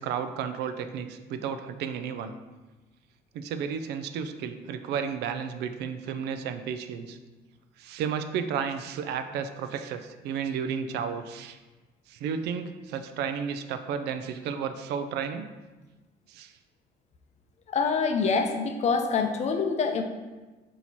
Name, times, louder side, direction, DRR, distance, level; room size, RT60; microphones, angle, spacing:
voice 1, 0.0-2.3 3.3-7.2 7.8-11.6 12.1-15.5 16.3-16.5, right 7 dB, 80° right, 9 dB, 0.4 m, -32 dB
voice 2, 17.7-20.0, left 5 dB, 40° left, 6 dB, 0.5 m, -25 dB
4.1 x 2.8 x 4.4 m, 1.2 s
cardioid pair, 110°, 17 cm